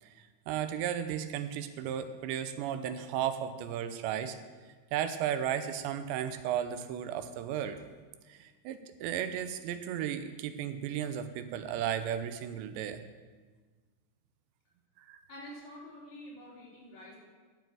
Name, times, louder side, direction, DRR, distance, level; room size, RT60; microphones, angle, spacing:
voice 1, 0.0-4.4 4.9-7.8 8.3-13.0 15.0-15.2, right 9 dB, 85° right, 9 dB, 3.0 m, -34 dB
voice 2, 15.3-17.2, equal, 45° left, -6 dB, 4.1 m, -47 dB
11.0 x 7.3 x 7.6 m, 1.4 s
omnidirectional pair, 5.0 m